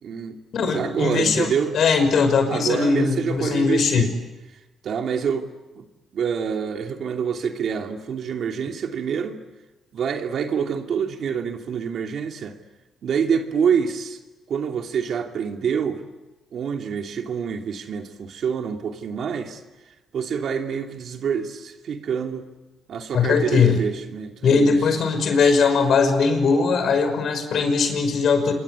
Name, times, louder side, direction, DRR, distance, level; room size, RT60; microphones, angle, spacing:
voice 1, 0.0-1.8 2.5-4.1 4.8-5.5 5.8-5.9 6.1-9.4 9.9-12.6 13.0-14.2 14.5-16.0 16.5-19.6 20.1-22.5 22.9-24.8, right 7 dB, 60° right, 5 dB, 2.8 m, -26 dB
voice 2, 0.5-4.0 23.1-23.8 24.4-28.5, left 5 dB, 60° left, 8 dB, 5.5 m, -20 dB
27.0 x 22.5 x 9.7 m, 1.1 s
cardioid pair, 90°, 0 cm